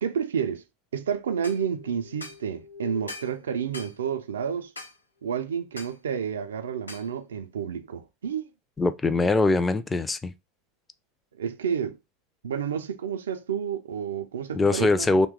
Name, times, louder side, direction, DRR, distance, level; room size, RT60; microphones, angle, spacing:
voice 1, 0.0-0.6 0.9-4.7 5.2-8.5 11.4-12.0 12.4-15.2, right 7 dB, 70° right, 0.3 m, -30 dB
sound 1, 1.3-4.3 5.2-5.7, left 5 dB, 55° left, 0.8 m, -48 dB
sound 2, 1.4-1.6 2.2-2.4 3.1-3.3 3.7-4.0 4.8-5.0 5.8-6.0 6.9-7.1, left 2 dB, 85° left, 0.6 m, -41 dB
voice 2, 8.8-10.3 14.5-15.3, left 3 dB, 15° left, 0.3 m, -22 dB
2.8 x 2.1 x 3.6 m
figure-of-eight pair, 80°, 0 cm